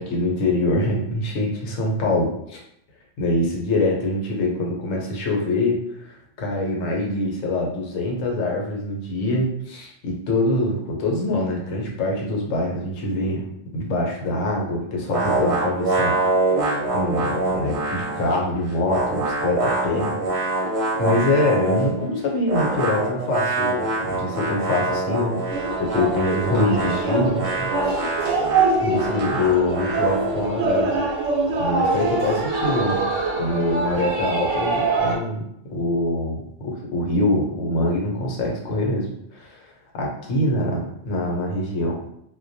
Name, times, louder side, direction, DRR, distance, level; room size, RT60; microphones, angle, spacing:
voice 1, 0.0-2.6 3.2-5.8 6.1-13.4 13.7-16.2 16.4-20.2 20.4-25.5 25.8-28.1 28.8-30.9 31.6-33.0 33.3-39.1 39.3-42.0, left 2 dB, 85° left, -1 dB, 1.0 m, -24 dB
sound 1, 15.1-18.4 18.7-22.0 22.4-30.5, right 2 dB, 45° right, 0.7 m, -25 dB
sound 2, 25.5-35.2, right 3 dB, 75° right, 0.9 m, -24 dB
2.2 x 2.2 x 2.6 m, 0.74 s
omnidirectional pair, 1.3 m